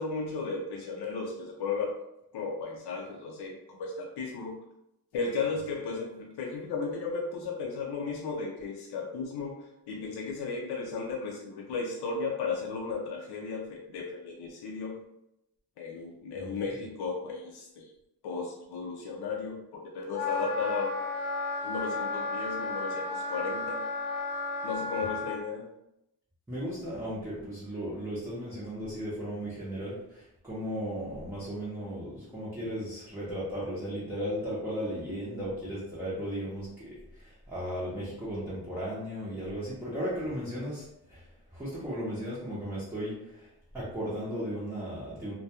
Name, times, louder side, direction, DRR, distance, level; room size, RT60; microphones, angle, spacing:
voice 1, 0.0-1.9 2.3-4.6 5.1-15.0 15.8-17.8 18.2-21.1 21.6-23.8 24.6-25.6, left 4 dB, 75° left, -1 dB, 0.5 m, -35 dB
Wind instrument woodwind instrument, 20.1-25.3, left 3 dB, 15° left, 0.9 m, -33 dB
voice 2, 26.5-36.7 37.1-41.3 41.5-43.5 43.7-45.3, equal, 5° right, -9 dB, 0.6 m, -36 dB
2.2 x 2.2 x 2.8 m, 0.84 s
wide cardioid pair, 145°, 40 cm